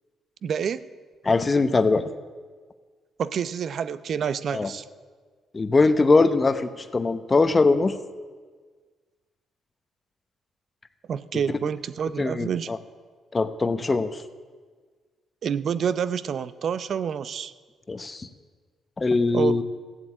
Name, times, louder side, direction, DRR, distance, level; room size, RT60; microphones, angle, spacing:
voice 1, 0.4-0.9 3.2-4.8 11.1-12.7 15.4-17.5 19.3-19.6, right 7 dB, 55° right, 15 dB, 0.6 m, -28 dB
voice 2, 1.2-2.1 4.5-4.7 5.5-8.0 12.2-12.8 13.3-14.1 17.9-18.3 19.0-19.6, left 3 dB, 25° left, 11 dB, 0.9 m, -21 dB
15.0 x 8.0 x 8.6 m, 1.5 s
cardioid pair, 90°, 0 cm